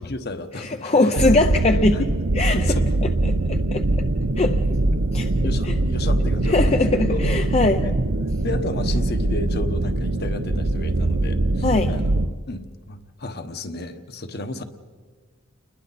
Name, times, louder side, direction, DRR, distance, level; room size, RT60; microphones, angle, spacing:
voice 1, 0.0-1.2 1.9-2.0 2.5-2.8 3.2-3.3 5.3-7.2 7.8-7.9 8.4-12.1 12.5-14.6, left 2 dB, 50° left, 7 dB, 1.2 m, -33 dB
voice 2, 0.6-2.1 2.3-2.6 3.7-3.8 4.4-4.6 5.1-5.3 5.7-5.8 6.4-7.8 11.6-11.9, left 2 dB, 30° left, 6 dB, 0.5 m, -20 dB
sound 1, 1.2-12.3, right 2 dB, 70° right, 0.9 m, -22 dB
29.0 x 21.5 x 4.2 m, 1.5 s
head